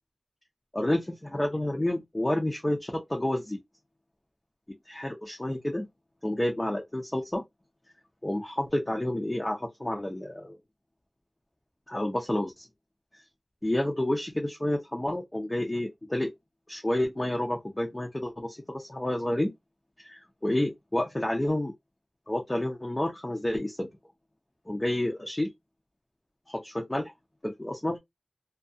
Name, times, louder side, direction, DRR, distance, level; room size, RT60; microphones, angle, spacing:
voice 1, 0.7-3.6 4.9-5.9 6.2-7.4 8.2-10.6 11.9-12.7 13.6-16.3 16.7-19.5 20.0-21.7 22.3-23.9 24.7-25.5 26.5-27.1 27.4-28.0, left 1 dB, 25° left, 0.5 m, -29 dB
2.3 x 2.3 x 2.6 m
wide cardioid pair, 70°, 0 cm